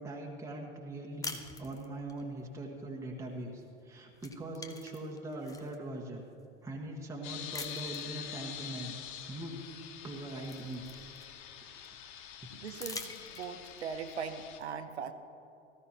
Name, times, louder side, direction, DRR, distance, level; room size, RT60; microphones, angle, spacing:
voice 1, 0.0-6.2 6.6-9.0 9.3-9.6 10.0-10.9 11.6-12.2, right 1 dB, 10° right, -1 dB, 1.5 m, -42 dB
sound 1, 1.2-2.2 3.6-3.8 4.1-5.8 6.4-6.5 7.5-8.1 9.6-9.7 10.1-11.6 12.7-13.8, left 3 dB, 10° left, 0.8 m, -45 dB
sound 2, 7.2-14.6, left 10 dB, 50° left, 0.9 m, -46 dB
voice 2, 12.5-15.1, right 6 dB, 70° right, 7 dB, 0.9 m, -40 dB
18.0 x 14.0 x 3.0 m, 2.8 s
figure-of-eight pair, 85°, 34 cm